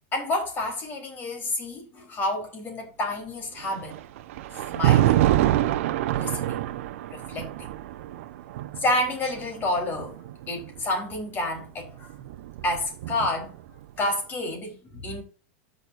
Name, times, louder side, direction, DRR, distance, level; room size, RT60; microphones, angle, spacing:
voice 1, 0.1-4.0 4.7-5.2 6.2-6.6 7.1-7.7 8.8-10.2 10.5-12.1 12.6-13.5 14.0-15.2, left 1 dB, 25° left, 4.2 m, -29 dB
Thunder, 3.6-10.8 11.9-13.6, right 13 dB, 65° right, 1.0 m, -26 dB
13.0 x 6.6 x 2.7 m
supercardioid pair, 145°, 8 cm